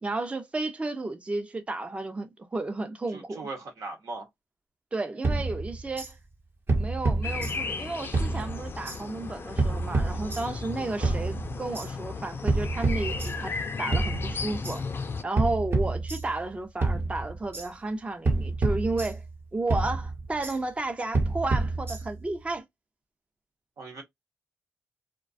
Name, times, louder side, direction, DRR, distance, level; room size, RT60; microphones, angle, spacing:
voice 1, 0.0-3.5 4.9-6.2 6.8-14.8 15.2-19.2 19.5-22.6, right 2 dB, 20° right, 0.5 m, -32 dB
voice 2, 3.1-4.3 11.0-11.1 23.8-24.0, right 3 dB, 85° right, 0.9 m, -39 dB
sound 1, 5.2-6.1 6.7-7.8 8.1-9.0 9.6-10.7 11.0-11.9 12.5-13.6 13.9-14.8 15.4-16.5 16.8-17.7 18.2-19.4 19.7-20.6 21.1-22.3, right 3 dB, 40° right, 0.8 m, -28 dB
sound 2, 7.2-15.2, left 4 dB, 45° left, 0.4 m, -35 dB
2.4 x 2.2 x 2.4 m
cardioid pair, 75°, 5 cm